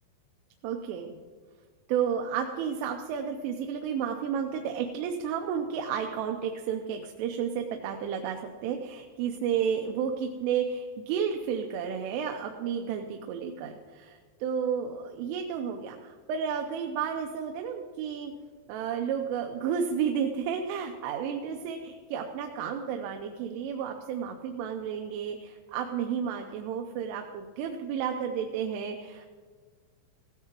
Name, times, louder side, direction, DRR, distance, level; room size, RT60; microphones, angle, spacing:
voice 1, 0.6-1.2 1.9-18.3 18.7-29.3, right 7 dB, 80° right, 4 dB, 3.2 m, -32 dB
16.5 x 16.5 x 2.9 m, 1.6 s
omnidirectional pair, 5.8 m